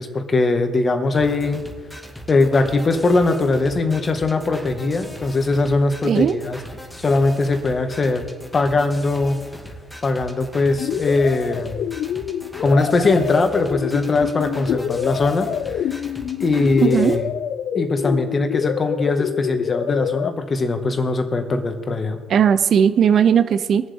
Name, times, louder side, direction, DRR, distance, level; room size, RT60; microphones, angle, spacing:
voice 1, 0.0-1.6 2.3-6.6 7.0-8.3 8.5-9.4 10.0-11.8 12.6-15.5 16.4-17.2 17.8-22.2, left 3 dB, 35° left, 6 dB, 1.7 m, -20 dB
sound 1, 1.2-17.2, equal, 10° left, 2.1 m, -39 dB
voice 2, 6.0-6.4 16.8-17.2 22.3-23.9, right 8 dB, 55° right, 13 dB, 0.6 m, -17 dB
sound 2, 10.8-20.3, left 9 dB, 60° left, 0.5 m, -26 dB
22.5 x 7.5 x 3.6 m, 1.5 s
supercardioid pair, 65°, 0 cm